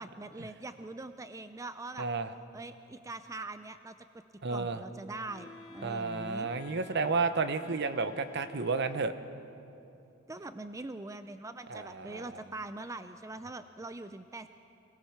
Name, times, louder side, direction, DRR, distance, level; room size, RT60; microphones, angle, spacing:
voice 1, 0.0-2.1 2.5-3.9 4.5-6.5 10.3-14.5, right 2 dB, 15° right, 10 dB, 0.4 m, -43 dB
voice 2, 2.0-2.3 4.4-4.8 5.8-9.1 11.7-12.2, right 4 dB, 55° right, 10 dB, 0.9 m, -31 dB
Wind instrument woodwind instrument, 5.3-9.4, left 5 dB, 85° left, 1.7 m, -50 dB
26.0 x 18.5 x 5.9 m, 2.8 s
head